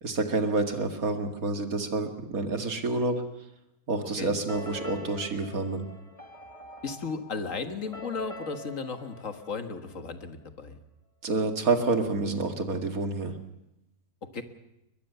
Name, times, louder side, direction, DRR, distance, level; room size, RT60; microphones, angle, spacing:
voice 1, 0.0-3.2 3.9-5.8 11.2-13.3, right 3 dB, 75° right, 5 dB, 2.5 m, -28 dB
sound 1, 4.5-10.2, left 1 dB, 25° left, 2.1 m, -44 dB
voice 2, 6.8-10.8 14.3-14.4, left 4 dB, 60° left, 7 dB, 2.0 m, -35 dB
22.0 x 21.5 x 6.8 m, 0.87 s
omnidirectional pair, 1.5 m